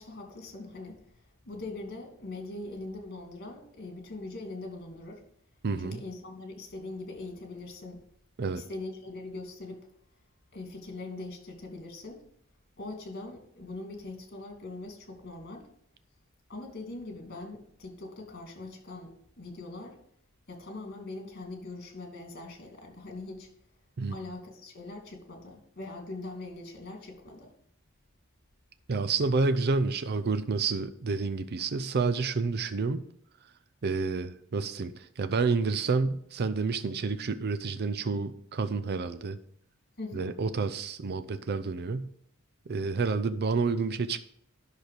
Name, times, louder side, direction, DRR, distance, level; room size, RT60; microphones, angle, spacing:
voice 1, 0.0-5.2 5.8-8.0 8.5-9.9 10.5-12.2 12.8-15.7 16.5-20.0 20.5-23.5 24.1-27.5 40.0-40.4, left 2 dB, 50° left, 2 dB, 2.6 m, -42 dB
voice 2, 5.6-6.0 8.4-8.6 24.0-24.2 28.9-33.0 33.8-39.4 40.1-42.1 42.7-44.2, right 4 dB, 50° right, 12 dB, 0.5 m, -29 dB
10.5 x 6.3 x 5.0 m, 0.68 s
head